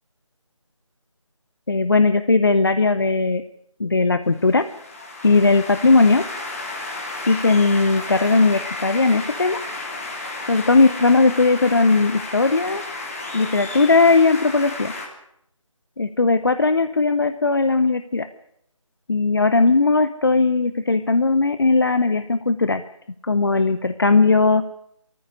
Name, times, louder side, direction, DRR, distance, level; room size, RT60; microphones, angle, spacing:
voice 1, 1.7-3.4 3.8-4.7 5.2-6.3 7.3-9.6 10.5-12.8 13.3-14.9 16.0-18.3 19.1-22.8 23.2-24.6, left 3 dB, 45° left, 12 dB, 0.9 m, -18 dB
sound 1, 4.4-15.1, left 2 dB, 25° left, 3.1 m, -33 dB
19.0 x 14.0 x 9.8 m, 0.73 s
figure-of-eight pair, 165°, 17 cm